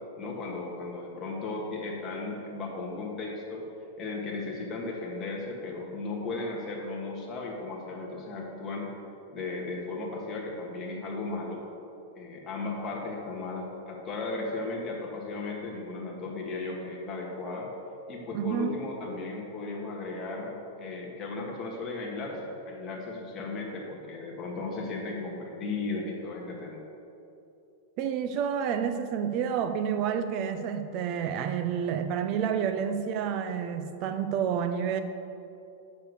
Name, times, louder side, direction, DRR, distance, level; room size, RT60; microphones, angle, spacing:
voice 1, 0.2-3.7 4.0-9.0 9.3-11.6 12.1-17.7 18.1-26.8, left 3 dB, 20° left, -2 dB, 1.6 m, -36 dB
voice 2, 18.3-18.8 28.0-35.0, right 8 dB, 35° right, 9 dB, 0.6 m, -29 dB
7.2 x 6.2 x 6.8 m, 2.8 s
supercardioid pair, 160°, 0 cm